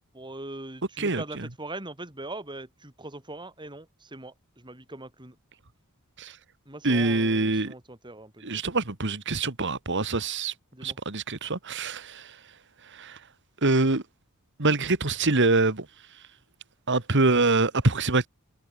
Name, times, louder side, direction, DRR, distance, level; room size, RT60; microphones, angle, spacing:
voice 1, 0.1-5.4 6.7-8.6 10.7-11.0, right 2 dB, 20° right, 3.7 m, -41 dB
voice 2, 1.0-1.5 6.2-6.4 6.8-7.7 8.4-10.5 10.8-12.4 12.9-13.2 13.6-14.0 14.6-15.9 16.9-18.3, right 3 dB, 55° right, 2.0 m, -25 dB
head